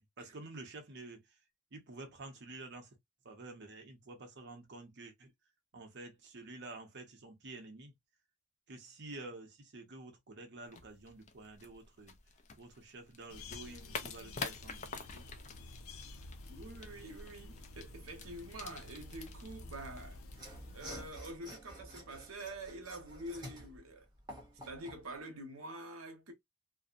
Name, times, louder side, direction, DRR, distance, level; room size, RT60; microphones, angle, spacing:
voice 1, 0.0-1.4 1.7-3.0 3.2-5.3 5.7-7.9 8.7-12.1 12.6-15.3, right 2 dB, 55° right, 0.7 m, -50 dB
sound 1, 10.7-20.9, left 5 dB, 35° left, 0.4 m, -48 dB
sound 2, 13.3-21.1, left 2 dB, 85° left, 0.5 m, -50 dB
voice 2, 16.5-24.1 24.7-26.3, right 1 dB, 85° right, 0.8 m, -47 dB
Mechanisms / Sawing, 20.3-25.1, right 1 dB, 20° right, 0.8 m, -50 dB
2.6 x 2.1 x 2.4 m
head